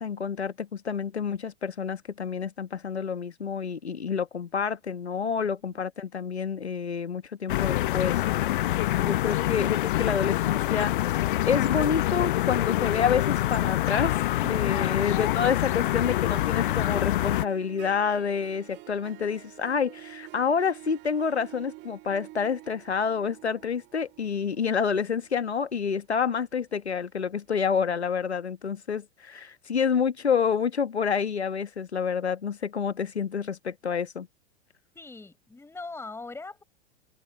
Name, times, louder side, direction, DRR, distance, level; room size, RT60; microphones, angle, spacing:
voice 1, 0.0-8.6 9.0-14.2 14.5-34.3, left 6 dB, 75° left, 1.6 m, -28 dB
sound 1, 7.5-17.5, left 15 dB, 50° left, 0.8 m, -26 dB
Harp, 13.0-26.7, right 19 dB, 35° right, 2.6 m, -49 dB
voice 2, 34.9-36.6, left 3 dB, 10° left, 5.1 m, -42 dB
figure-of-eight pair, 100°, 33 cm